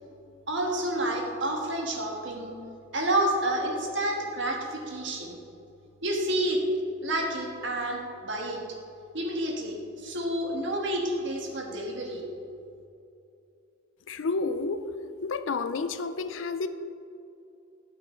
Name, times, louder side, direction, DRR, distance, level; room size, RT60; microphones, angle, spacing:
voice 1, 0.5-2.5 2.9-5.4 6.0-6.6 7.0-8.6 9.1-9.8 10.0-12.3, right 1 dB, 60° right, 1 dB, 1.5 m, -29 dB
voice 2, 14.1-14.9 15.2-16.7, left 4 dB, 70° left, 11 dB, 0.5 m, -30 dB
13.0 x 5.8 x 4.4 m, 2.6 s
head